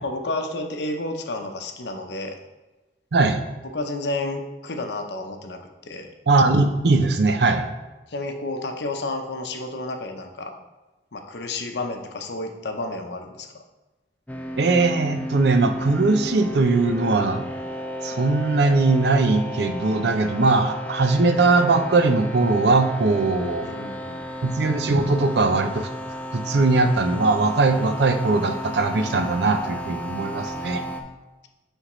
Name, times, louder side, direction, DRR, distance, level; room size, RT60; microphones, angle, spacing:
voice 1, 0.0-2.4 3.7-6.1 8.1-10.5 11.1-13.5 23.6-24.2 30.4-30.7, left 2 dB, 75° left, 4 dB, 0.7 m, -31 dB
voice 2, 6.3-7.7 14.6-17.5 18.0-23.7 24.4-25.9 26.3-30.8, right 3 dB, 70° right, 7 dB, 0.5 m, -20 dB
sound 1, 14.3-31.0, equal, 10° left, 0.4 m, -34 dB
9.7 x 3.5 x 3.1 m, 1.1 s
head